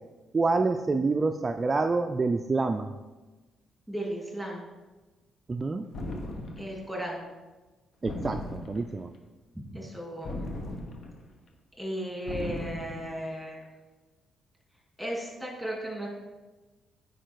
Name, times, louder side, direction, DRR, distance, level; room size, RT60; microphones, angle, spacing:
voice 1, 0.3-2.9 5.5-5.9 8.0-9.1, right 3 dB, 30° right, 6 dB, 0.4 m, -27 dB
voice 2, 3.9-4.7 6.6-7.3 9.5-10.4 11.8-13.6 15.0-16.1, equal, ahead, -2 dB, 2.8 m, -35 dB
sound 1, 5.9-6.8 8.1-9.0 10.2-11.3 12.3-13.1, left 1 dB, 55° left, 1.1 m, -37 dB
8.9 x 5.0 x 4.6 m, 1.2 s
cardioid pair, 90°, 0 cm